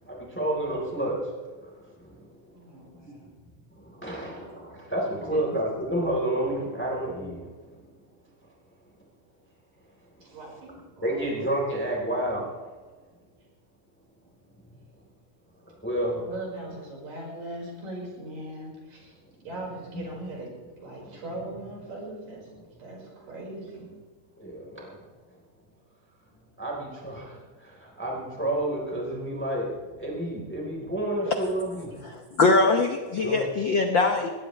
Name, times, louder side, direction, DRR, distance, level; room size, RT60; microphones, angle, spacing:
voice 1, 0.0-2.4 3.0-3.3 3.7-7.9 10.1-10.4 11.0-12.7 14.5-14.6 15.7-16.3 19.2-19.3 19.9-20.1 20.9-21.2 24.4-25.4 26.6-29.7 30.0-31.9 33.2-33.4, right 1 dB, 5° left, -2 dB, 3.6 m, -31 dB
voice 2, 2.5-3.3 4.1-4.3 5.1-5.4 10.2-11.3 14.2-14.3 16.3-20.5 20.8-22.5 22.8-23.9, right 1 dB, 80° right, -3 dB, 6.7 m, -40 dB
voice 3, 32.0-34.3, left 3 dB, 80° left, 4 dB, 1.0 m, -22 dB
21.0 x 18.0 x 3.3 m, 1.4 s
omnidirectional pair, 3.7 m